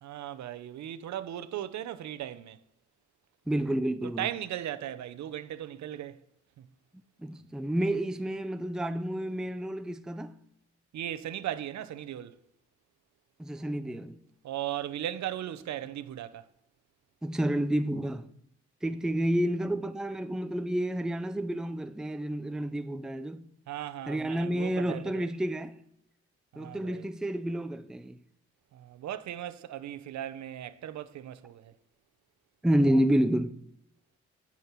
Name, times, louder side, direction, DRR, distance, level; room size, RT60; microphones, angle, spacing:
voice 1, 0.0-2.6 4.0-6.2 6.6-6.7 10.9-12.4 14.4-16.5 23.7-25.3 26.5-27.0 28.7-31.7, right 11 dB, 65° right, 0.8 m, -37 dB
voice 2, 3.5-4.3 7.2-10.4 13.4-14.2 17.2-18.3 18.8-23.5 24.1-25.8 26.6-28.2 32.6-33.6, right 1 dB, ahead, 0.5 m, -29 dB
10.5 x 7.3 x 4.6 m
cardioid pair, 90°, 30 cm